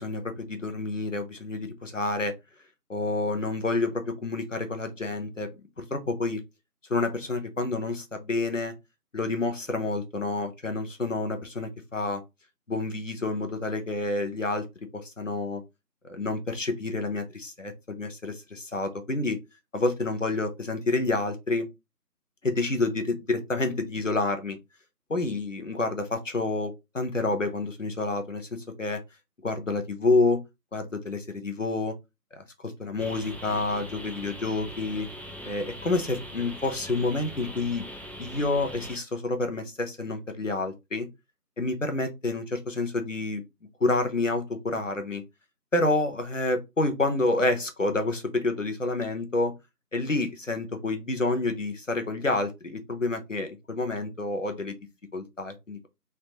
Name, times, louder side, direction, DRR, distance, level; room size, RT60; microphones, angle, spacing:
voice 1, 0.0-2.3 2.9-5.5 5.8-6.4 6.9-8.7 9.1-12.2 12.7-14.7 14.9-15.6 16.0-19.4 19.7-21.7 22.4-24.6 25.1-29.0 29.4-30.4 30.7-31.9 32.3-35.1 35.4-37.9 38.2-41.1 41.6-43.4 43.8-45.2 45.7-49.5 49.9-54.8 55.1-55.9, left 2 dB, 50° left, 6 dB, 0.6 m, -28 dB
sound 1, 33.0-39.0, equal, 5° left, 0.4 m, -41 dB
3.3 x 2.4 x 2.7 m, 0.22 s
figure-of-eight pair, 180°, 48 cm